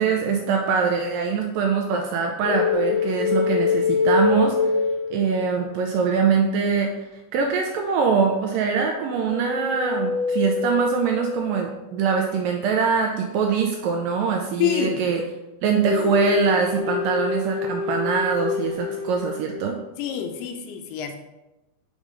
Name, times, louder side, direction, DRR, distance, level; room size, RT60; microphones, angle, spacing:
voice 1, 0.0-4.6 5.1-6.9 7.3-15.2 15.6-19.8, right 5 dB, 85° right, 2 dB, 2.0 m, -23 dB
sound 1, 2.4-5.6 9.1-11.7 15.8-19.6, left 5 dB, 40° left, 2.4 m, -25 dB
voice 2, 14.6-15.0 20.0-21.2, left 9 dB, 85° left, 5 dB, 2.7 m, -26 dB
6.6 x 3.6 x 5.1 m, 1.0 s
omnidirectional pair, 4.4 m